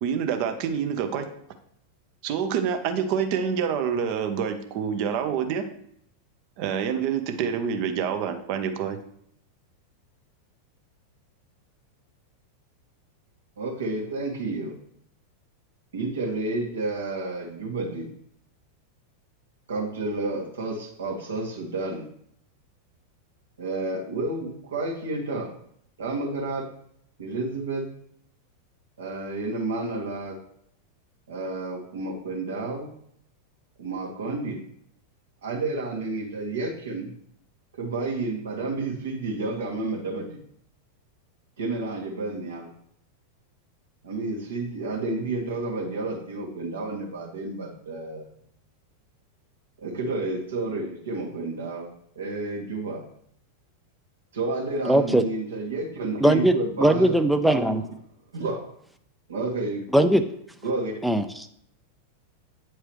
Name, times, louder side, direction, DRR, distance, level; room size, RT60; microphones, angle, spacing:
voice 1, 0.0-1.3 2.2-5.6 6.6-9.0, right 7 dB, 45° right, 8 dB, 0.8 m, -27 dB
voice 2, 13.6-14.7 15.9-18.1 19.7-22.1 23.6-25.5 26.0-26.7 27.2-27.9 29.0-30.4 31.3-32.9 33.8-34.6 35.4-37.1 37.8-40.4 41.6-42.7 44.0-48.3 49.8-51.9 52.1-53.0 54.3-57.1 57.5-57.6 58.3-58.6 59.3-60.0 60.6-60.9, right 3 dB, 65° right, 1 dB, 1.5 m, -30 dB
voice 3, 54.9-55.2 56.2-57.8 59.9-60.2 61.0-61.5, right 1 dB, ahead, 8 dB, 0.4 m, -20 dB
8.8 x 4.7 x 3.0 m, 0.68 s
figure-of-eight pair, 90°, 0 cm